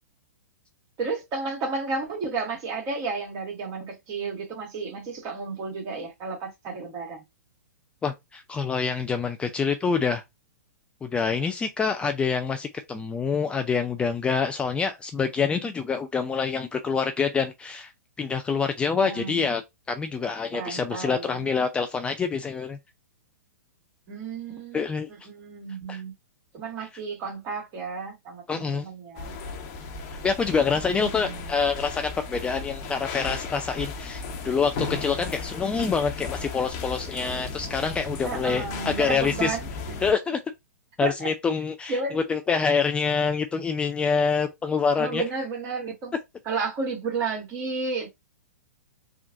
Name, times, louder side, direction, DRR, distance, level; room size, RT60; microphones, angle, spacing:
voice 1, 1.0-7.2 19.0-19.5 20.5-21.4 24.1-24.8 25.1-26.1 26.5-29.4 31.0-31.5 38.2-39.7 41.0-41.3 41.9-42.2 45.0-46.2 46.4-48.1, right 4 dB, 35° right, 1.6 m, -32 dB
voice 2, 8.0-10.2 11.0-17.9 18.2-19.6 19.9-22.8 24.7-25.1 25.9-26.0 28.5-28.9 30.2-39.6 40.0-40.4 41.0-45.2, left 5 dB, 10° left, 0.3 m, -26 dB
sound 1, 29.2-40.1, left 4 dB, 40° left, 1.0 m, -35 dB
3.7 x 2.2 x 2.6 m
figure-of-eight pair, 115°, 9 cm